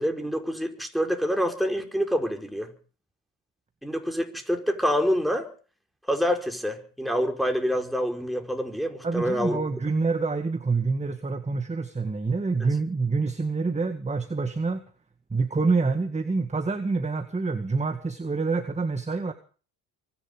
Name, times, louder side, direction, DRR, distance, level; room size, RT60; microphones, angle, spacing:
voice 1, 0.0-2.7 3.8-5.5 6.1-9.6, equal, ahead, 3 dB, 4.8 m, -26 dB
voice 2, 9.0-14.8 15.3-19.3, right 4 dB, 15° right, 8 dB, 2.0 m, -27 dB
24.5 x 11.0 x 5.2 m, 0.39 s
supercardioid pair, 80°, 42 cm